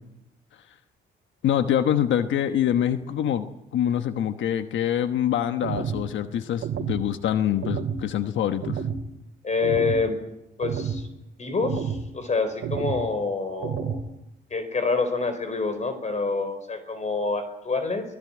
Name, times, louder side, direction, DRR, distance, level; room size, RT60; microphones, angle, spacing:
voice 1, 1.4-3.5 3.7-8.8, left 10 dB, 75° left, 9 dB, 1.2 m, -25 dB
sound 1, 5.6-6.0 6.6-7.0 7.6-8.0 8.6-9.0 9.6-10.0 10.6-11.0 11.6-12.0 12.6-13.0 13.6-14.0, right 7 dB, 70° right, 2.3 m, -29 dB
voice 2, 9.4-10.2 10.6-11.1 11.4-14.0 14.5-18.0, left 4 dB, 35° left, 10 dB, 4.4 m, -27 dB
24.5 x 18.5 x 8.9 m, 0.88 s
cardioid pair, 90°, 20 cm